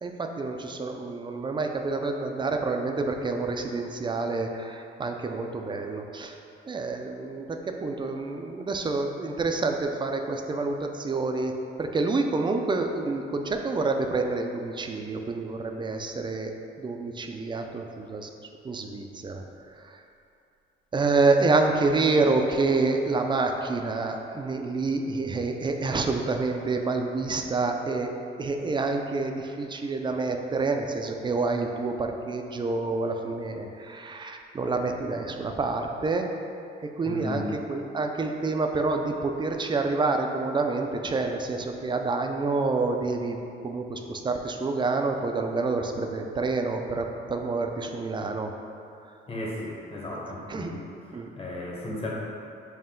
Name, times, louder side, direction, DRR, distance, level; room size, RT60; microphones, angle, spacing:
voice 1, 0.0-6.4 6.7-11.5 11.8-18.3 18.6-19.4 19.8-20.0 20.9-28.1 28.4-36.3 37.0-37.4 37.7-43.4 43.6-48.5 50.1-50.2 50.5-50.8 51.1-51.3, right 3 dB, 25° right, 4 dB, 0.3 m, -28 dB
voice 2, 37.0-37.5 49.3-50.8 51.4-52.1, left 1 dB, 30° left, -4 dB, 0.9 m, -34 dB
5.5 x 2.1 x 3.7 m, 2.6 s
cardioid pair, 90°, 20 cm